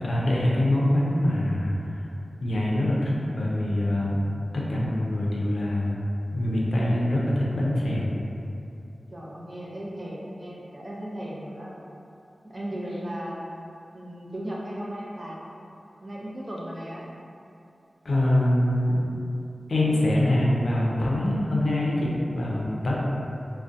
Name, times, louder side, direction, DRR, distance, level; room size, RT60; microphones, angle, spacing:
voice 1, 0.0-1.7 2.4-4.2 4.5-6.0 6.3-8.1 18.0-19.0 19.7-22.9, left 1 dB, 70° left, -5 dB, 0.4 m, -24 dB
voice 2, 9.1-11.7 12.4-15.4 16.0-17.0, equal, 30° right, -5 dB, 0.4 m, -36 dB
2.5 x 2.1 x 2.4 m, 2.6 s
wide cardioid pair, 95°, 0 cm